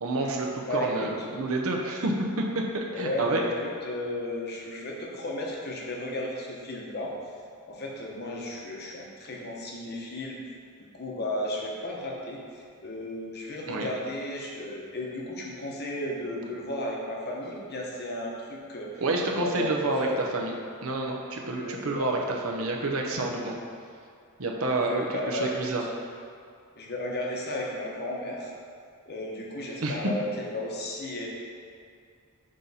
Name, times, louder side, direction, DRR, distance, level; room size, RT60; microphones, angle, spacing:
voice 1, 0.0-3.4 13.7-13.9 19.0-20.1 20.3-20.5 20.8-23.6 24.4-25.8 29.8-30.0, right 2 dB, 70° right, 0 dB, 0.7 m, -29 dB
voice 2, 0.7-1.1 2.9-7.1 7.7-10.4 10.8-18.9 19.4-19.7 20.0-20.2 21.5-22.1 24.9-25.7 26.8-28.5 29.1-31.3, left 1 dB, 50° left, -2 dB, 0.9 m, -34 dB
6.3 x 3.9 x 4.1 m, 2.3 s
head